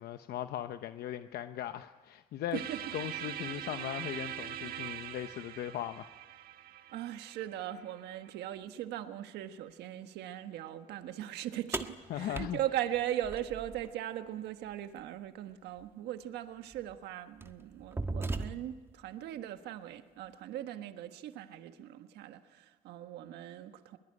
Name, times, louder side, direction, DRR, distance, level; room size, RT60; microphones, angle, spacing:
voice 1, 0.0-2.6 2.9-6.1 12.1-12.6, left 12 dB, 70° left, 0.9 m, -38 dB
sound 1, 2.5-8.5, right 11 dB, 60° right, 1.6 m, -43 dB
voice 2, 6.9-24.0, right 12 dB, 80° right, 1.4 m, -39 dB
sound 2, 11.7-13.9 15.8-15.9 16.7-16.9 17.4-18.9, right 2 dB, 15° right, 1.4 m, -38 dB
22.0 x 22.0 x 9.7 m
cardioid pair, 110°, 17 cm